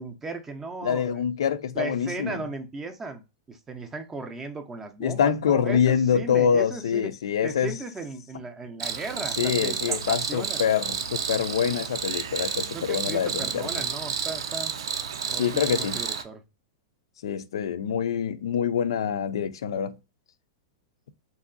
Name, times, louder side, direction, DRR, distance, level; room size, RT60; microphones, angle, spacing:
voice 1, 0.0-1.2 1.7-7.1 7.4-10.6 12.7-14.7 15.3-16.4, right 3 dB, 10° right, 0.4 m, -36 dB
voice 2, 0.8-2.4 5.0-7.7 9.4-13.8 15.4-16.0 17.2-20.0, left 8 dB, 90° left, 0.4 m, -25 dB
Cricket, 8.8-16.2, right 7 dB, 85° right, 0.5 m, -31 dB
3.0 x 2.6 x 2.4 m
supercardioid pair, 165°, 3 cm